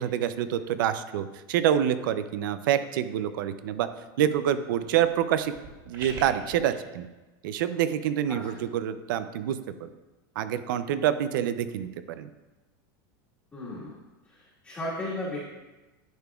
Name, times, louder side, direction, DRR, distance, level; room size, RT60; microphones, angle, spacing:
voice 1, 0.0-3.9 4.2-5.5 5.9-7.1 7.4-9.9 10.4-12.3, right 10 dB, 70° right, 12 dB, 0.5 m, -27 dB
sound 1, 4.8-6.7, right 3 dB, 35° right, 2.1 m, -43 dB
voice 2, 13.5-13.9 14.3-15.4, left 1 dB, 15° left, -11 dB, 1.6 m, -35 dB
10.5 x 6.8 x 2.3 m, 1.1 s
supercardioid pair, 170°, 11 cm